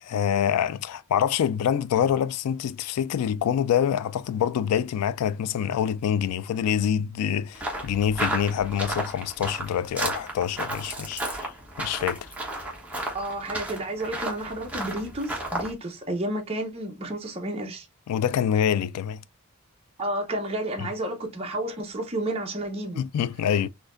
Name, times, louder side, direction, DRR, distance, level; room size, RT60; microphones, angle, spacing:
voice 1, 0.0-11.5 11.8-12.3 18.1-19.2 23.0-23.7, left 9 dB, 85° left, 0.3 m, -26 dB
sound 1, 7.5-15.7, right 1 dB, 5° right, 1.1 m, -33 dB
voice 2, 13.1-17.9 20.0-23.0 23.5-23.6, right 1 dB, 25° right, 0.7 m, -31 dB
4.1 x 2.7 x 2.4 m
head